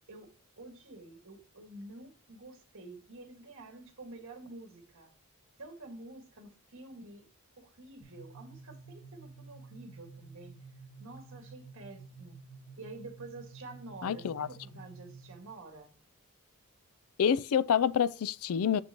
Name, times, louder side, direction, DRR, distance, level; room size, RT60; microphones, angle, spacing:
voice 1, 0.1-5.1 5.6-7.2 7.6-10.6 11.0-12.4 12.8-15.9, right 2 dB, 60° right, 1.8 m, -49 dB
sound 1, 8.0-15.6, right 4 dB, 50° left, 1.8 m, -51 dB
voice 2, 14.0-14.5 17.2-18.8, left 8 dB, 70° left, 0.4 m, -27 dB
7.3 x 6.9 x 2.9 m
head